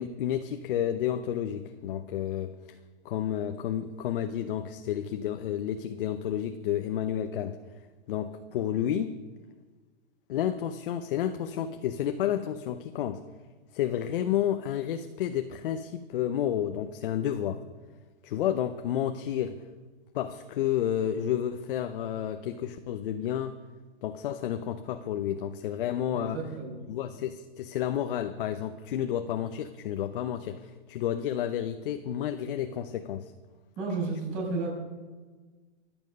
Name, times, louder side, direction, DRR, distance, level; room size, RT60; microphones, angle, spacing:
voice 1, 0.0-2.5 3.0-7.6 8.1-9.2 10.3-13.2 13.7-17.6 18.2-19.6 20.1-23.6 24.0-26.4 26.9-33.3, left 10 dB, 50° left, 8 dB, 0.9 m, -31 dB
voice 2, 26.1-26.8 33.8-34.7, right 3 dB, 30° right, -1 dB, 6.2 m, -32 dB
24.0 x 9.1 x 5.4 m, 1.4 s
hypercardioid pair, 150°, 35 cm